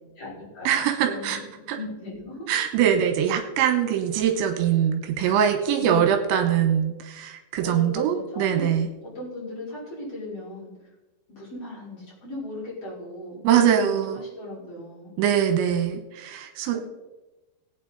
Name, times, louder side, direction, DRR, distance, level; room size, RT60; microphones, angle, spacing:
voice 1, 0.2-1.4 1.7-2.5 5.2-5.4 5.8-6.2 7.6-8.7 9.1-10.7 11.3-15.1, left 1 dB, 30° left, -8 dB, 6.0 m, -37 dB
voice 2, 0.7-1.4 1.7-1.8 2.5-8.9 13.4-14.2 15.2-16.8, right 9 dB, 80° right, 6 dB, 3.3 m, -22 dB
20.5 x 8.8 x 4.0 m, 1.1 s
omnidirectional pair, 5.4 m